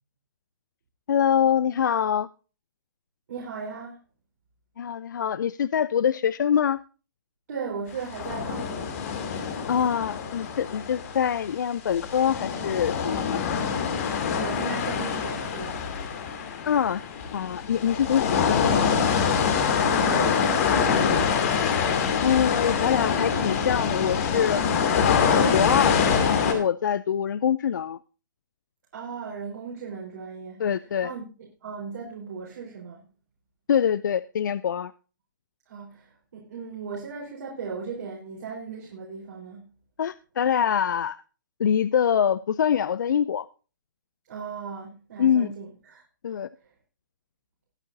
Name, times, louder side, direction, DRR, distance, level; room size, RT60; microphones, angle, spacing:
voice 1, 1.1-2.3 4.8-6.8 9.7-13.4 16.7-17.0 17.3-18.9 22.2-24.6 25.0-28.0 30.6-31.1 33.7-34.9 40.0-41.2 41.6-43.5 45.2-45.5 46.2-46.5, left 8 dB, 65° left, 18 dB, 0.4 m, -24 dB
voice 2, 3.3-4.0 7.5-9.0 14.3-15.8 19.6-21.5 28.9-30.6 31.0-31.3 31.6-33.0 35.7-39.7 44.3-46.0, right 5 dB, 60° right, -3 dB, 4.0 m, -37 dB
sound 1, 8.1-11.6 11.9-26.5, left 6 dB, 45° left, 2.5 m, -25 dB
20.5 x 8.2 x 2.6 m, 0.35 s
hypercardioid pair, 140°, 11 cm